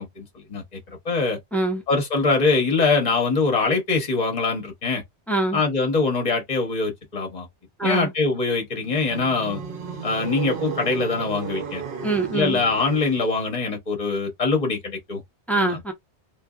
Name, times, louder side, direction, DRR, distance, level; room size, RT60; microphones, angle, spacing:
voice 1, 0.0-1.4 1.9-5.0 5.5-7.5 7.8-9.6 10.0-11.8 12.3-15.2 15.5-15.8, left 4 dB, 40° left, 1.2 m, -23 dB
voice 2, 1.5-1.8 5.3-5.6 7.8-8.1 12.0-12.6 15.5-15.9, right 2 dB, ahead, 0.7 m, -24 dB
sound 1, 8.8-13.5, right 6 dB, 55° right, 0.8 m, -34 dB
2.7 x 2.4 x 2.4 m
omnidirectional pair, 1.1 m